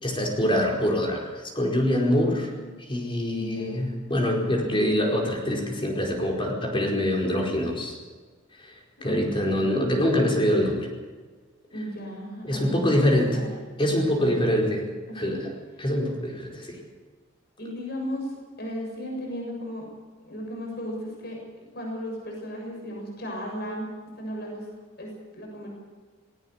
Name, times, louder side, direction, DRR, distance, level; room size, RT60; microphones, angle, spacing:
voice 1, 0.0-2.5 2.9-8.0 8.6-8.7 9.0-10.9 12.4-13.4 13.8-14.9 15.1-15.5 15.8-16.8, left 1 dB, 25° left, 1 dB, 4.8 m, -24 dB
voice 2, 2.0-2.7 3.4-3.8 9.0-9.9 11.7-13.5 15.1-15.4 17.6-18.3 18.6-19.9 20.2-23.9 24.2-24.7 25.0-25.7, equal, 55° left, 0 dB, 7.4 m, -35 dB
20.5 x 18.0 x 8.4 m, 1.4 s
head